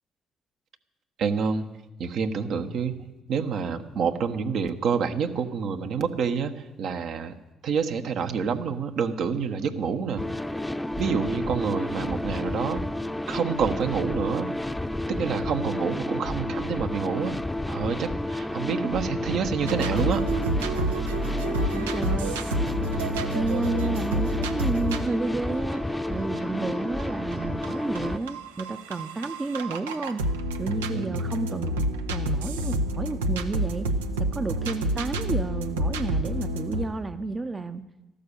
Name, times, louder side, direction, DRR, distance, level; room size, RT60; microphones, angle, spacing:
voice 1, 1.2-1.6 2.0-3.0 3.3-7.3 7.6-10.2 11.0-12.8 13.3-14.5 15.1-17.3 17.7-20.2 30.9-31.1, right 6 dB, 65° right, 6 dB, 1.2 m, -28 dB
sound 1, 10.2-28.2, left 1 dB, 10° left, 0.8 m, -31 dB
sound 2, 19.7-36.9, right 1 dB, 90° right, 0.8 m, -29 dB
voice 2, 21.7-22.4 23.3-30.2 30.6-31.7 32.1-33.9 34.2-37.9, right 3 dB, 30° right, 10 dB, 0.8 m, -31 dB
13.5 x 12.0 x 6.9 m, 1.1 s
hypercardioid pair, 50°, 0 cm